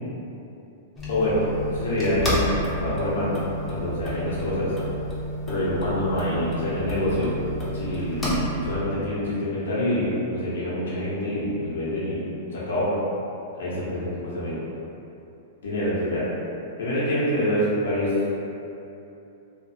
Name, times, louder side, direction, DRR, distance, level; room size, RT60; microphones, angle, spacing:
sound 1, 1.0-8.8, equal, 15° left, 0.7 m, -30 dB
voice 1, 1.1-1.4 1.7-2.5 2.8-3.4 3.6-4.7 5.5-7.3 7.7-8.3 8.6-12.3 12.5-12.9 13.5-14.6 15.6-16.2 16.8-18.1, left 1 dB, 75° left, -9 dB, 0.9 m, -26 dB
2.5 x 2.4 x 2.7 m, 2.9 s
hypercardioid pair, 125°, 0 cm